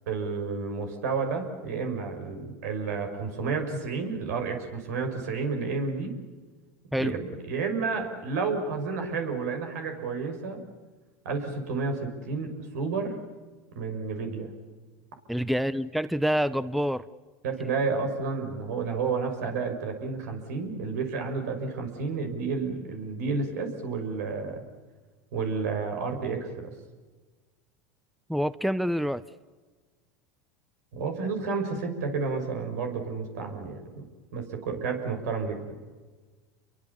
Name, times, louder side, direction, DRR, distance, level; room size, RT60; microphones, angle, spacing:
voice 1, 0.1-6.1 6.9-7.2 7.4-10.7 11.2-13.2 13.7-14.5 17.4-24.6 25.3-26.7 30.9-34.0 34.3-35.8, right 4 dB, 80° right, 5 dB, 6.3 m, -31 dB
voice 2, 15.3-17.0 28.3-29.2, equal, ahead, 16 dB, 0.7 m, -27 dB
29.5 x 23.5 x 7.2 m, 1.3 s
hypercardioid pair, 100°, 9 cm